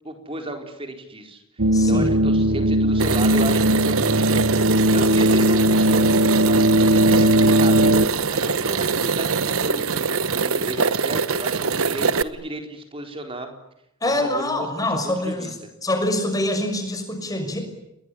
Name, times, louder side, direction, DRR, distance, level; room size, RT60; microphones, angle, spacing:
voice 1, 0.0-7.8 8.3-13.5 14.2-15.5, right 1 dB, 25° right, 5 dB, 4.3 m, -34 dB
sound 1, 1.6-8.1, right 1 dB, 65° right, 1.0 m, -18 dB
voice 2, 1.7-2.4 14.0-15.6 15.8-17.6, left 1 dB, 15° left, 5 dB, 6.0 m, -25 dB
sound 2, 3.0-12.2, right 5 dB, 80° right, 1.1 m, -23 dB
29.5 x 20.5 x 10.0 m, 0.84 s
head